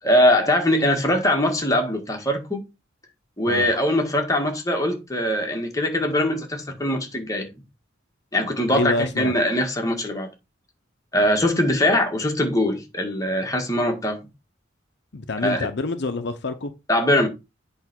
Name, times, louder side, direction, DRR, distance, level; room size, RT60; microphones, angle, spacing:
voice 1, 0.0-2.6 3.4-7.5 8.3-10.3 11.1-14.3 15.4-15.7 16.9-17.3, left 1 dB, 20° left, 1.7 m, -22 dB
voice 2, 8.7-9.4 15.1-16.7, left 3 dB, 60° left, 0.8 m, -26 dB
8.2 x 3.3 x 6.1 m
head